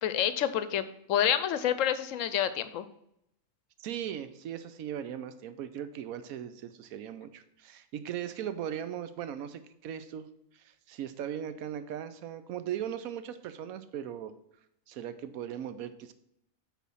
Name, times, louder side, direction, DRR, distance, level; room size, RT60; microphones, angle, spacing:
voice 1, 0.0-0.8 1.1-2.9, left 10 dB, 70° left, 13 dB, 0.9 m, -28 dB
voice 2, 3.8-10.3 10.5-14.3 14.9-16.1, right 10 dB, 90° right, 12 dB, 1.1 m, -38 dB
8.2 x 4.1 x 5.5 m, 0.78 s
omnidirectional pair, 1.5 m